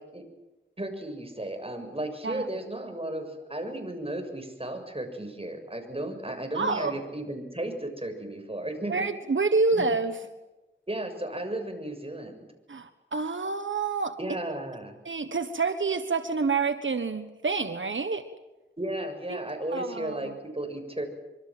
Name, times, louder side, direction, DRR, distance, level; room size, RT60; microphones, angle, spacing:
voice 1, 0.8-8.9 9.7-9.9 10.9-12.5 14.2-14.9 18.8-21.1, right 1 dB, 30° right, 5 dB, 7.0 m, -34 dB
voice 2, 6.5-7.0 8.9-10.2 12.7-14.2 15.0-18.3 19.3-19.4 19.7-20.4, right 4 dB, 85° right, 9 dB, 1.4 m, -28 dB
25.5 x 24.5 x 7.7 m, 1.1 s
wide cardioid pair, 45°, 19 cm